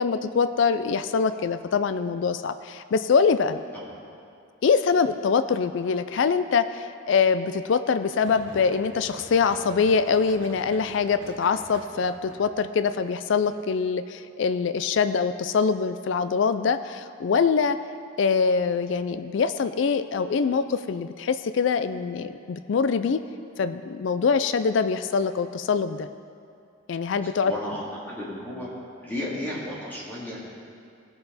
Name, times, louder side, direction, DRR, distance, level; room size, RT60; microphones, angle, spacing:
voice 1, 0.0-3.6 4.6-17.8 18.2-23.2 23.6-26.1 26.9-27.5, left 5 dB, 65° left, 11 dB, 0.4 m, -24 dB
sound 1, 8.2-13.6, right 2 dB, 65° right, 0.9 m, -46 dB
voice 2, 27.2-28.7 29.0-30.5, left 1 dB, 10° left, -7 dB, 2.6 m, -34 dB
17.5 x 6.9 x 4.1 m, 2.5 s
head